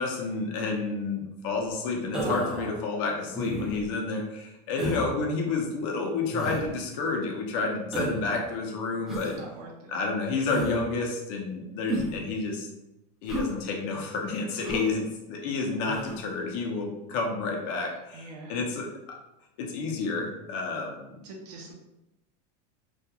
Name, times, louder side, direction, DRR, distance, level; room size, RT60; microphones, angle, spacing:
voice 1, 0.0-9.3 9.9-12.7 13.2-19.2 19.6-21.3, left 3 dB, 55° left, 0 dB, 0.6 m, -30 dB
Human voice, 2.1-2.6 3.3-3.9 4.8-5.1 6.3-6.7 7.9-8.3 9.1-9.4 10.5-10.8 11.9-12.2 13.3-13.5 14.6-14.9 15.9-16.2, right 1 dB, ahead, 0.4 m, -31 dB
voice 2, 2.1-2.8 8.9-10.0 12.0-12.3 18.1-18.6 21.2-21.7, right 3 dB, 90° right, 0 dB, 0.6 m, -42 dB
2.9 x 2.3 x 2.3 m, 0.91 s
supercardioid pair, 155°, 20 cm